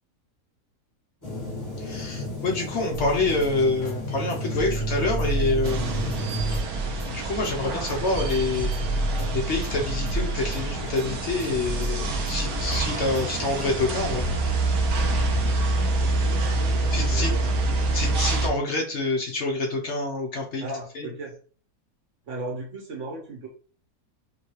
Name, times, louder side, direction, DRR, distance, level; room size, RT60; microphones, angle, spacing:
sound 1, 1.2-6.6, right 1 dB, 15° left, 1.1 m, -32 dB
voice 1, 1.8-6.3 7.0-8.7 9.3-14.3 16.9-17.3 17.9-20.7 20.9-21.1, left 3 dB, 55° left, 0 dB, 0.9 m, -27 dB
sound 2, 2.9-15.9, equal, 75° left, 1.5 m, -32 dB
sound 3, 5.6-18.5, right 2 dB, 90° right, 1.3 m, -27 dB
voice 2, 16.1-17.4 20.6-21.3 22.3-23.5, right 2 dB, 55° right, -1 dB, 1.2 m, -36 dB
5.3 x 2.3 x 3.1 m, 0.43 s
omnidirectional pair, 1.6 m